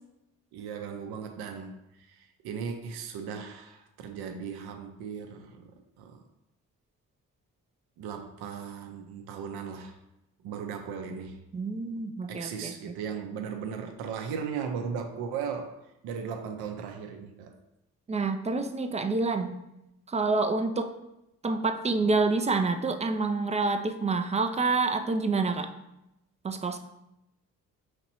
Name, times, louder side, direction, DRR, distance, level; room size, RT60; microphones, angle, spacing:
voice 1, 0.5-6.2 8.0-10.0 10.4-11.4 12.3-15.8 16.0-17.5, right 6 dB, 65° right, 4 dB, 0.6 m, -37 dB
voice 2, 11.5-12.9 18.1-19.6 20.1-20.9 21.4-25.7 26.4-26.8, right 3 dB, 20° right, 7 dB, 0.3 m, -27 dB
5.1 x 3.0 x 2.9 m, 0.90 s
hypercardioid pair, 40°, 41 cm